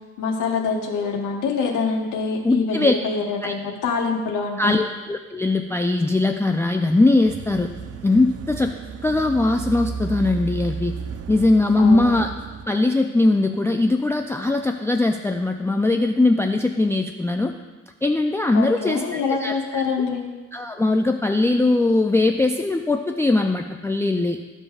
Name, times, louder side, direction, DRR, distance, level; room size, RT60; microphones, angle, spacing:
voice 1, 0.2-4.8 11.8-12.1 18.5-20.2, left 5 dB, 85° left, 0 dB, 1.2 m, -25 dB
voice 2, 2.4-2.9 3.4-3.5 4.6-7.7 8.0-8.7 9.0-10.9 11.3-12.3 12.7-17.5 18.0-19.8 20.5-24.4, left 2 dB, 10° left, 4 dB, 0.4 m, -20 dB
sound 1, 7.2-12.7, right 6 dB, 55° right, 0.5 m, -33 dB
14.5 x 5.4 x 2.4 m, 1.3 s
cardioid pair, 90°, 30 cm